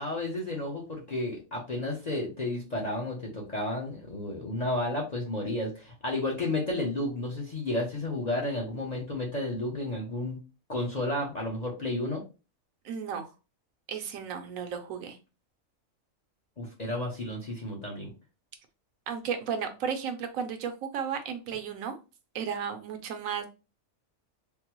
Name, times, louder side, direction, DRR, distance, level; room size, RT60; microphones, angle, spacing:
voice 1, 0.0-10.4 10.7-12.2 16.6-18.1, left 1 dB, 40° left, -2 dB, 0.6 m, -32 dB
voice 2, 12.8-13.3 13.9-15.2 19.1-22.0 22.3-23.5, right 7 dB, 75° right, 6 dB, 1.0 m, -34 dB
3.6 x 2.0 x 2.9 m, 0.31 s
omnidirectional pair, 1.5 m